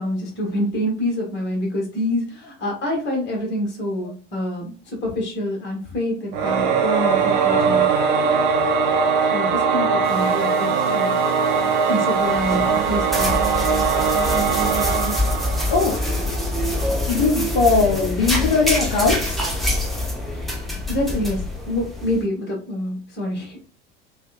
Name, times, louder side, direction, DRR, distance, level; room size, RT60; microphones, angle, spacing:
voice 1, 0.0-7.9 8.1-8.6 9.3-11.2 11.9-13.4 20.9-23.7, left 1 dB, 30° left, -1 dB, 1.4 m, -27 dB
Singing / Musical instrument, 6.3-16.4, right 5 dB, 55° right, 0.8 m, -20 dB
sound 1, 10.0-15.1, right 1 dB, 90° left, 0.7 m, -33 dB
sound 2, 12.2-22.2, left 1 dB, ahead, 0.9 m, -25 dB
voice 2, 17.1-19.4, left 4 dB, 50° left, 1 dB, 0.8 m, -19 dB
5.2 x 2.4 x 2.4 m, 0.41 s
figure-of-eight pair, 70°, 35 cm